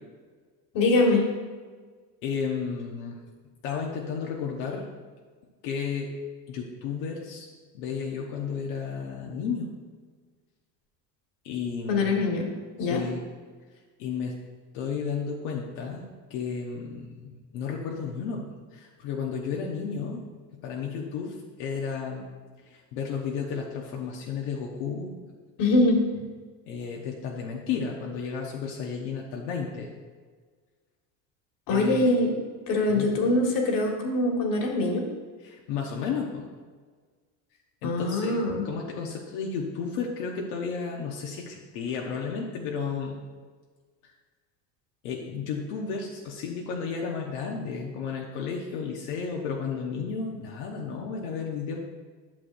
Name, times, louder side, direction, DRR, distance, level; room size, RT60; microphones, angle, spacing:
voice 1, 0.7-1.3 11.9-12.5 12.8-13.0 25.6-26.0 31.7-32.4 32.7-35.1 37.8-38.6, left 2 dB, 55° left, 1 dB, 1.9 m, -23 dB
voice 2, 2.2-3.2 3.6-4.9 5.6-6.1 6.5-7.5 7.7-9.7 11.4-12.2 12.8-13.2 14.0-14.3 14.7-18.4 18.7-20.2 20.6-22.2 22.6-25.4 26.6-29.9 31.7-32.1 32.9-33.1 35.4-36.4 37.8-43.2 45.0-51.8, left 6 dB, 90° left, -1 dB, 1.1 m, -33 dB
12.0 x 6.5 x 2.6 m, 1.5 s
cardioid pair, 125°, 40 cm